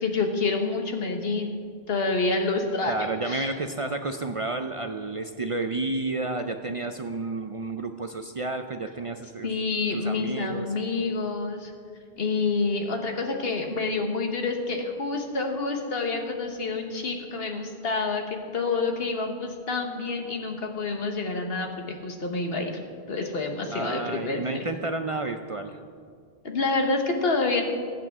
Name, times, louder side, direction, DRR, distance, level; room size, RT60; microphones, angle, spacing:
voice 1, 0.0-1.6 1.9-3.5 9.4-11.7 12.2-22.7 23.1-24.6 26.4-27.6, left 3 dB, 65° left, 3 dB, 1.5 m, -28 dB
voice 2, 2.9-9.5 9.9-10.7 23.7-25.8, right 3 dB, 50° right, 7 dB, 0.4 m, -31 dB
21.0 x 8.4 x 3.6 m, 2.1 s
omnidirectional pair, 1.1 m